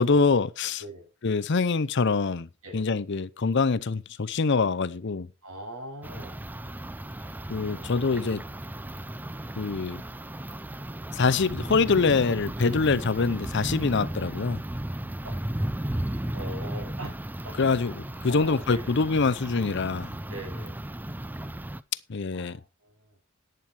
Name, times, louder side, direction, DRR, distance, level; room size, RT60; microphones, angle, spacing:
voice 1, 0.0-0.8 1.2-2.5 2.7-5.3 7.5-8.4 9.6-10.0 11.1-14.6 17.6-20.2 22.1-22.6, left 4 dB, 55° left, 0.6 m, -25 dB
voice 2, 5.4-6.4 7.6-8.3 15.2-15.3 16.3-17.2 17.4-17.5 18.2-18.9 20.3-20.8 22.3-23.2, equal, 80° right, 6.6 m, -42 dB
sound 1, 6.0-21.8, right 1 dB, 10° right, 0.5 m, -35 dB
11.0 x 9.0 x 4.5 m
head